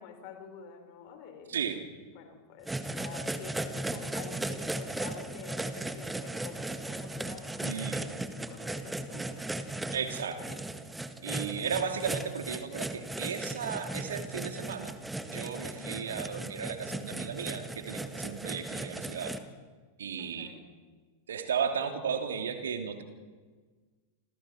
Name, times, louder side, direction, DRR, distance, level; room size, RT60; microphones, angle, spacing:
voice 1, 0.0-1.6 2.1-9.3 11.5-12.0 15.7-16.0 20.2-20.6, left 7 dB, 45° left, 5 dB, 4.6 m, -49 dB
voice 2, 1.5-1.8 7.6-8.0 9.9-10.6 11.2-15.0 15.3-19.3 20.0-20.5 21.3-23.0, right 7 dB, 65° right, 6 dB, 2.8 m, -35 dB
sound 1, 2.7-19.4, right 2 dB, 5° right, 1.7 m, -37 dB
28.5 x 27.0 x 4.5 m, 1.5 s
figure-of-eight pair, 90°, 0 cm